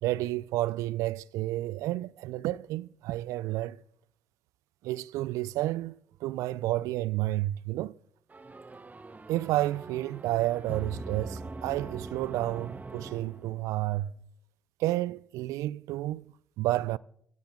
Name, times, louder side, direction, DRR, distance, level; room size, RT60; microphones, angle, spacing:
voice 1, 0.0-3.8 4.8-8.0 9.3-14.1 14.8-17.0, right 16 dB, 75° right, 0.4 m, -31 dB
sound 1, 8.3-13.9, right 3 dB, 30° right, 1.0 m, -42 dB
15.5 x 14.5 x 3.7 m
hypercardioid pair, 45°, 6 cm